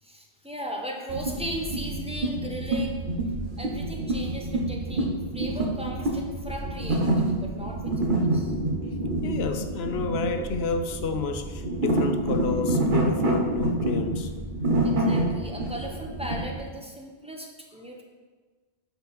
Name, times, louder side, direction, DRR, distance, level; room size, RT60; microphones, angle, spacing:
voice 1, 0.0-3.0 3.6-8.5 14.8-18.0, right 1 dB, 5° right, 0 dB, 0.8 m, -37 dB
sound 1, 1.1-16.6, right 1 dB, 55° right, 1.0 m, -27 dB
voice 2, 9.2-14.3, left 5 dB, 80° left, 7 dB, 0.9 m, -30 dB
6.5 x 4.6 x 4.8 m, 1.4 s
omnidirectional pair, 1.0 m